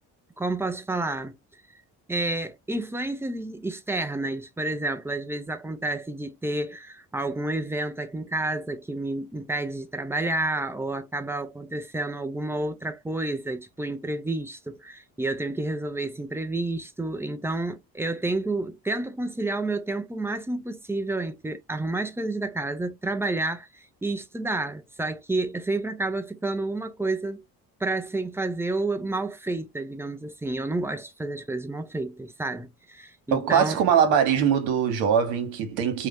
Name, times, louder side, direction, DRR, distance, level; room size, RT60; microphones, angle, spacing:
voice 1, 0.4-1.4 2.1-27.4 27.8-33.8, right 2 dB, 5° right, 0.5 m, -30 dB
voice 2, 33.3-36.1, right 8 dB, 75° right, 0.9 m, -22 dB
2.7 x 2.0 x 3.4 m
hypercardioid pair, 55°, 46 cm